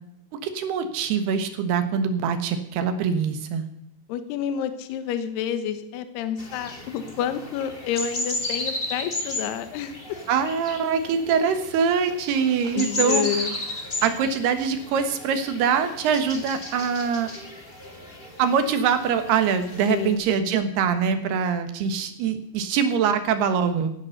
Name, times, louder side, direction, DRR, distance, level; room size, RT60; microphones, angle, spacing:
voice 1, 0.4-3.7 10.3-13.5 14.0-17.3 18.4-23.9, right 6 dB, 70° right, 8 dB, 3.2 m, -23 dB
voice 2, 4.1-9.9 12.8-13.6 19.9-20.2, left 9 dB, 75° left, 10 dB, 3.1 m, -29 dB
sound 1, 6.4-20.1, left 2 dB, 20° left, 1.5 m, -34 dB
16.5 x 10.5 x 6.5 m, 0.78 s
omnidirectional pair, 5.1 m